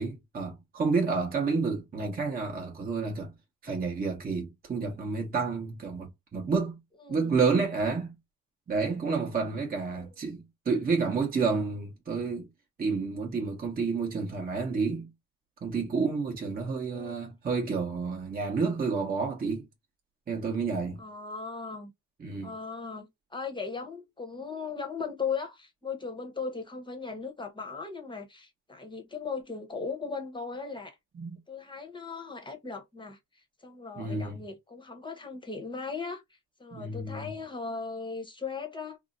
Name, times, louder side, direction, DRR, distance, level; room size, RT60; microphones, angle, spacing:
voice 1, 0.0-3.3 3.6-6.8 7.1-8.2 8.7-12.5 12.8-15.1 15.6-19.7 20.3-21.0 22.2-22.5 31.1-31.4 34.0-34.4 36.7-37.3, right 4 dB, 25° right, 0.9 m, -30 dB
voice 2, 7.0-7.4 9.9-10.1 16.9-17.3 21.0-21.9 22.4-31.0 31.5-36.2 36.6-39.0, left 5 dB, 15° left, 0.9 m, -38 dB
2.7 x 2.0 x 3.8 m
cardioid pair, 110°, 33 cm